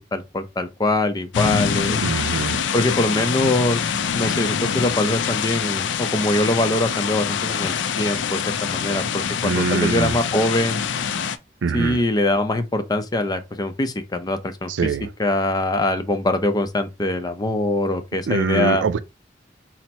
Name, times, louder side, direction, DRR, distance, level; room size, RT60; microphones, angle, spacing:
voice 1, 0.1-2.0 2.7-3.8 4.1-10.8 11.7-14.7 15.2-18.8, left 1 dB, 20° left, 0.5 m, -23 dB
sound 1, 1.3-11.4, left 7 dB, 75° left, 0.4 m, -25 dB
voice 2, 2.0-2.6 9.4-10.1 11.6-12.0 14.7-15.1 18.3-19.0, right 5 dB, 90° right, 0.4 m, -23 dB
4.3 x 2.1 x 4.2 m
head